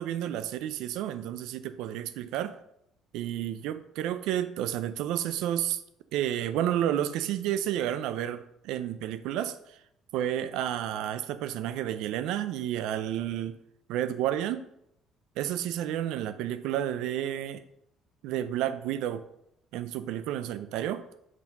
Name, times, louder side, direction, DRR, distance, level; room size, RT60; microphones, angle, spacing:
voice 1, 0.0-2.6 3.1-5.8 6.1-9.8 10.1-13.6 13.9-14.6 15.4-17.6 18.2-19.2 19.7-21.0, right 11 dB, 80° right, 12 dB, 0.4 m, -31 dB
6.1 x 4.4 x 5.2 m, 0.77 s
cardioid pair, 130°, 0 cm